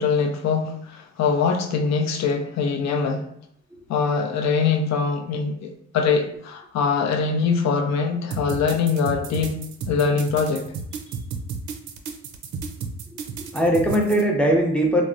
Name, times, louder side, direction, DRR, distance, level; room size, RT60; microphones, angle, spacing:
voice 1, 0.0-3.3 3.9-9.6 9.9-10.6, left 5 dB, 60° left, 5 dB, 0.5 m, -23 dB
sound 1, 8.3-14.2, right 5 dB, 75° right, 0.5 m, -32 dB
voice 2, 13.1-15.0, right 1 dB, 5° left, 0 dB, 0.5 m, -21 dB
3.3 x 2.0 x 2.5 m, 0.69 s
cardioid pair, 90°, 30 cm